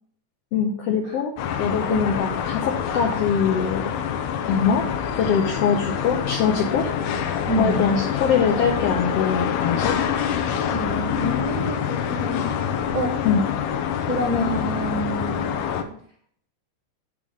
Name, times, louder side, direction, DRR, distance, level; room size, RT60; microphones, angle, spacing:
voice 1, 0.5-1.3 1.6-3.8 4.5-4.9 5.1-6.9 7.6-10.0 13.2-13.4, left 6 dB, 70° left, 1 dB, 1.6 m, -23 dB
sound 1, 1.4-15.8, left 8 dB, 90° left, 2.2 m, -26 dB
voice 2, 1.9-2.2 7.5-7.9 10.7-12.5 12.9-13.2 14.1-16.0, right 1 dB, 75° right, -1 dB, 0.8 m, -28 dB
9.1 x 3.7 x 6.2 m, 0.62 s
omnidirectional pair, 3.4 m